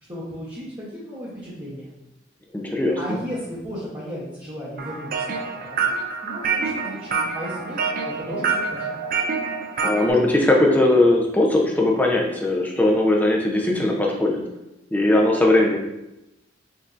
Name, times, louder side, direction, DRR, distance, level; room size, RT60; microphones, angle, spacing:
voice 1, 0.1-1.9 3.0-5.4 5.6-6.0 6.2-7.8 8.0-9.0, equal, 25° right, -11 dB, 0.9 m, -34 dB
voice 2, 2.5-3.2 9.8-14.5 14.9-15.8, left 1 dB, 10° left, -1 dB, 0.5 m, -19 dB
sound 1, 4.8-10.1, right 5 dB, 45° right, 0.4 m, -26 dB
5.3 x 2.7 x 2.5 m, 0.94 s
head